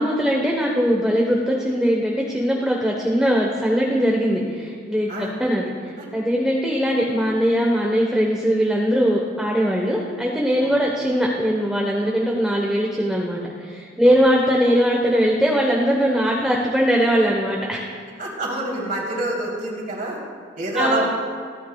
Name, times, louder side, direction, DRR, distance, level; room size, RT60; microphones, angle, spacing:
voice 1, 0.0-17.8 20.8-21.0, equal, 5° right, -2 dB, 1.0 m, -21 dB
voice 2, 18.2-20.2 20.6-21.1, right 2 dB, 45° right, -3 dB, 3.3 m, -26 dB
29.0 x 10.0 x 2.3 m, 2.1 s
head